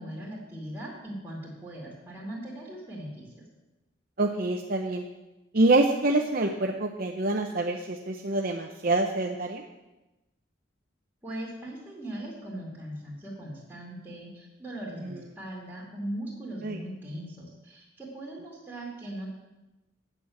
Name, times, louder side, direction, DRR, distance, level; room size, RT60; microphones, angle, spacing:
voice 1, 0.0-3.4 11.2-19.3, right 1 dB, 10° right, -6 dB, 2.5 m, -39 dB
voice 2, 4.2-5.0 5.5-9.6 15.0-15.2 16.6-16.8, right 2 dB, 45° right, 3 dB, 0.7 m, -26 dB
9.2 x 7.9 x 7.1 m, 1.0 s
head